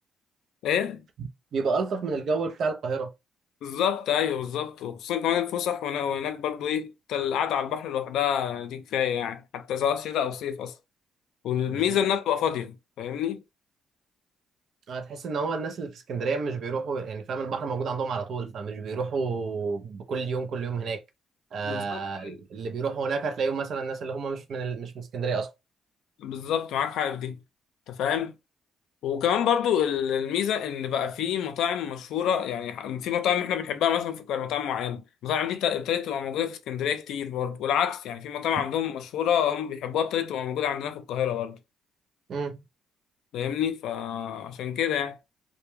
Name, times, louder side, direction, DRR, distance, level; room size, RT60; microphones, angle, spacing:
voice 1, 0.6-1.0 3.6-10.7 11.4-13.4 21.6-22.4 26.2-27.4 27.9-28.3 29.0-41.6 43.3-45.2, left 9 dB, 80° left, 0.4 m, -28 dB
voice 2, 1.2-3.1 11.7-12.0 14.9-21.0 21.5-25.5 42.3-42.6, right 4 dB, 65° right, 0.5 m, -30 dB
2.1 x 2.1 x 3.0 m
cardioid pair, 90°, 0 cm